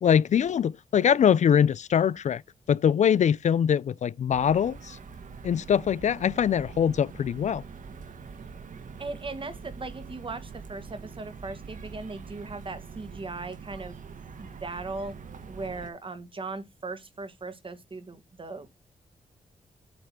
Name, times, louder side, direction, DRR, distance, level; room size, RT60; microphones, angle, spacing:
voice 1, 0.0-2.4 2.7-5.0 5.4-7.6, left 8 dB, 60° left, 0.4 m, -23 dB
sound 1, 4.3-15.9, right 5 dB, 70° right, 1.2 m, -44 dB
voice 2, 9.0-13.9 14.4-15.1 15.5-18.7, right 3 dB, 40° right, 1.6 m, -38 dB
8.6 x 3.2 x 6.0 m
cardioid pair, 75°, 14 cm